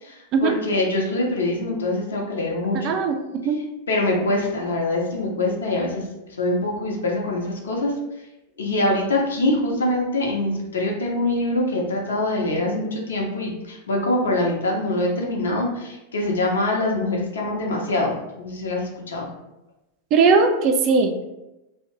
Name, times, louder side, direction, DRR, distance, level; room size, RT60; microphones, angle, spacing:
voice 1, 0.0-2.8 3.9-6.1 6.4-7.9 8.6-19.3, left 2 dB, 70° left, -1 dB, 0.6 m, -24 dB
voice 2, 2.8-3.6 20.1-21.2, right 4 dB, 40° right, 5 dB, 0.3 m, -19 dB
2.5 x 2.0 x 2.9 m, 0.94 s
figure-of-eight pair, 90°, 0 cm